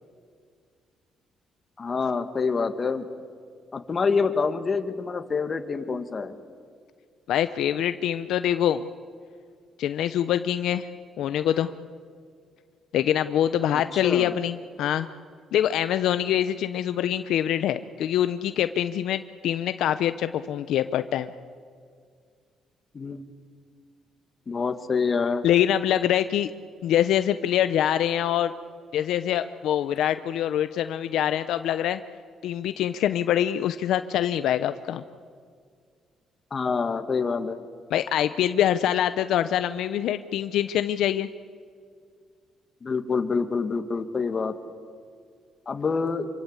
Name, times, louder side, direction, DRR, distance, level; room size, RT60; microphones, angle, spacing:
voice 1, 1.8-3.1 3.7-6.3 13.9-14.4 22.9-23.2 24.5-25.4 36.5-37.6 42.8-44.6 45.7-46.3, left 5 dB, 40° left, 8 dB, 2.0 m, -26 dB
voice 2, 7.3-8.9 9.8-10.9 11.2-11.7 12.9-15.1 15.5-21.3 25.4-26.5 26.8-28.5 28.9-32.0 32.4-35.0 37.9-41.3, left 11 dB, 80° left, 11 dB, 0.7 m, -24 dB
26.0 x 24.5 x 8.2 m, 2.1 s
cardioid pair, 90°, 0 cm